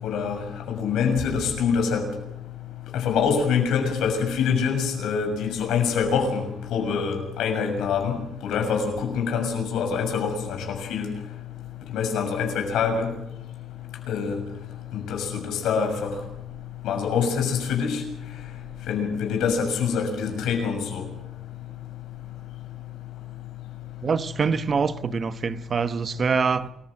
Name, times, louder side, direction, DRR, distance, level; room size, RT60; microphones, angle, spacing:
voice 1, 0.0-0.4 0.7-2.0 2.9-6.4 6.7-11.1 11.9-13.1 14.1-14.4 14.9-16.1 16.8-18.0 18.9-21.1, left 6 dB, 85° left, 6.7 m, -25 dB
voice 2, 24.0-26.7, right 5 dB, 45° right, 1.0 m, -25 dB
28.5 x 15.0 x 7.7 m
cardioid pair, 90°, 0 cm